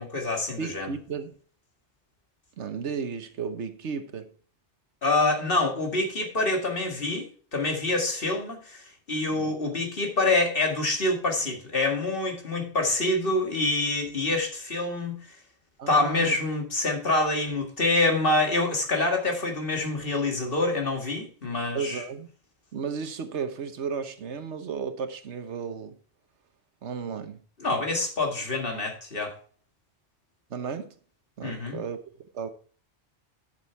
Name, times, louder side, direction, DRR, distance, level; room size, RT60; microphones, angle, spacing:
voice 1, 0.0-0.9 5.0-15.2 15.9-22.0 27.6-29.3 31.4-31.8, left 2 dB, 55° left, 2.2 m, -26 dB
voice 2, 0.6-1.4 2.6-4.3 9.3-9.8 15.8-16.4 21.7-22.3 22.7-26.0 26.8-27.4 30.5-30.9 31.4-32.0 32.3-32.5, right 6 dB, 85° right, 1.3 m, -34 dB
9.9 x 6.8 x 4.5 m
omnidirectional pair, 1.1 m